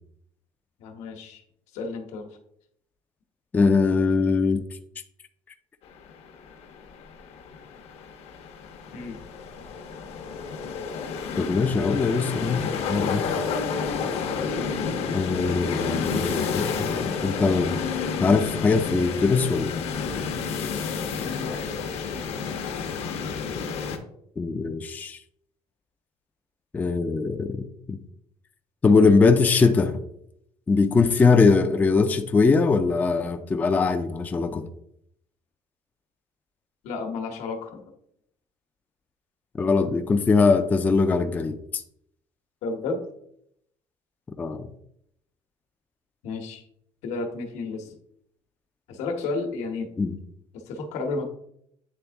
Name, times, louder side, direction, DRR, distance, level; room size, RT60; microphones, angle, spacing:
voice 1, 0.8-1.4 1.7-2.3 8.9-9.2 21.1-22.2 36.8-37.8 42.6-43.0 46.2-46.6 47.0-48.0 48.9-49.9 50.5-51.2, left 3 dB, 80° left, 4 dB, 1.1 m, -32 dB
voice 2, 3.5-4.7 11.4-12.6 12.9-13.3 15.1-17.8 18.2-19.7 24.4-25.2 26.7-28.0 28.8-30.0 30.7-34.7 39.6-41.8 44.4-44.7 50.0-50.1, left 4 dB, 15° left, 7 dB, 0.3 m, -21 dB
sound 1, 5.9-24.0, left 5 dB, 60° left, 0.8 m, -30 dB
8.5 x 3.6 x 3.4 m, 0.74 s
cardioid pair, 160°, 12 cm